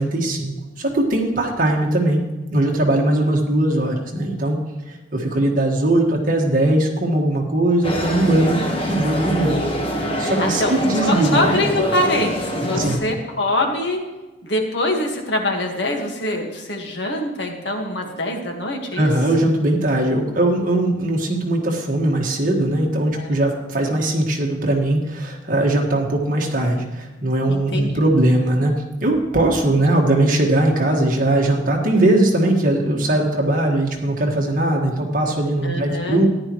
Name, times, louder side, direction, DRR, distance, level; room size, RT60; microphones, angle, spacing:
voice 1, 0.0-2.2 2.5-4.6 4.9-8.6 8.9-9.6 9.9-11.6 12.7-13.0 19.0-28.8 29.0-36.3, right 1 dB, 45° right, 0 dB, 1.7 m, -20 dB
sound 1, 7.8-13.0, equal, 30° left, 1.4 m, -24 dB
voice 2, 10.4-10.7 11.0-14.0 14.4-19.1 23.1-23.4 27.5-27.9 35.6-36.2, left 1 dB, 65° left, 2 dB, 1.7 m, -24 dB
14.0 x 10.5 x 3.1 m, 1.1 s
head